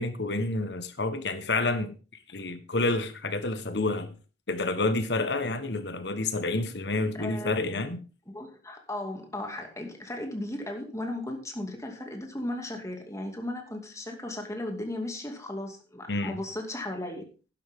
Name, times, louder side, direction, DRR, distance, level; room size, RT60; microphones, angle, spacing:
voice 1, 0.0-1.9 2.3-4.1 4.5-8.0 16.1-16.4, left 2 dB, 70° left, 1.4 m, -29 dB
voice 2, 7.2-7.8 8.3-17.2, left 1 dB, 15° left, 2.5 m, -36 dB
11.5 x 11.5 x 3.7 m
head